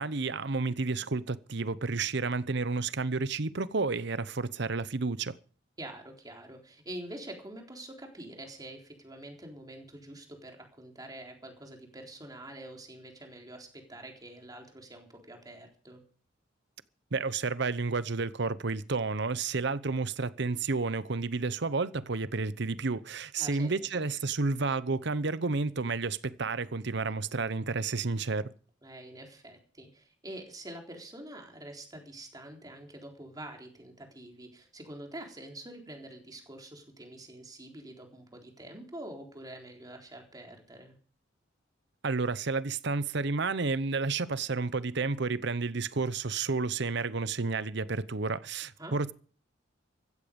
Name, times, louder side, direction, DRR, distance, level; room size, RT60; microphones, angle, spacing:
voice 1, 0.0-5.4 17.1-28.5 42.0-49.1, right 4 dB, 65° right, 0.9 m, -31 dB
voice 2, 5.8-16.0 23.4-24.0 28.8-41.0 48.8-48.9, right 1 dB, 20° right, 3.9 m, -46 dB
15.5 x 13.5 x 5.3 m
head